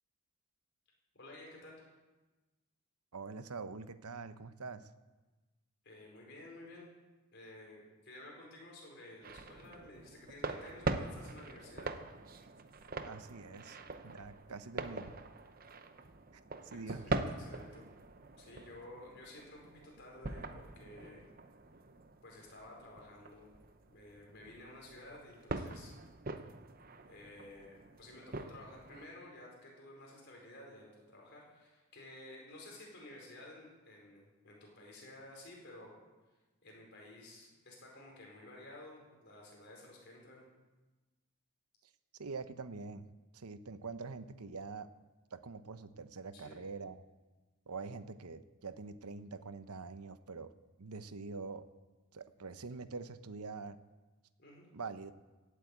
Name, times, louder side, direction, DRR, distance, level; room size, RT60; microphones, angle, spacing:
voice 1, 1.1-1.8 5.8-6.9 7.3-11.9 16.7-17.9 18.4-21.3 22.2-23.5 23.9-25.9 27.1-35.9 36.6-40.5 46.3-46.6 54.4-54.7, left 1 dB, 50° left, -1 dB, 4.7 m, -53 dB
voice 2, 3.1-4.9 13.0-15.1 16.6-17.4 42.2-43.1 43.3-44.9 45.3-47.0 47.7-50.5 50.8-51.7 52.1-53.8 54.7-55.1, right 4 dB, 90° right, 12 dB, 0.9 m, -45 dB
sound 1, 9.2-29.1, right 3 dB, 40° right, 0.8 m, -43 dB
17.0 x 8.5 x 8.5 m, 1.2 s
head